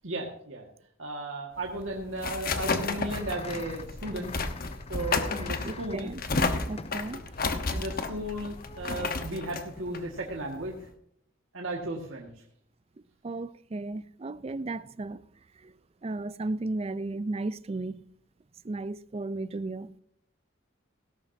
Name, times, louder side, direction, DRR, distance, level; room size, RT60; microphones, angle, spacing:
voice 1, 0.0-0.7 1.0-4.3 4.9-6.1 7.7-10.9 11.5-12.3, right 1 dB, 75° right, 1.8 m, -35 dB
sound 1, 1.6-10.9, left 3 dB, 45° left, 1.1 m, -32 dB
sound 2, 2.6-9.1, left 3 dB, 30° left, 0.5 m, -44 dB
voice 2, 5.6-6.2 6.7-7.2 13.2-15.2 15.6-15.7 16.0-18.0 18.6-19.9, right 2 dB, 30° right, 0.4 m, -34 dB
17.5 x 11.5 x 2.7 m
head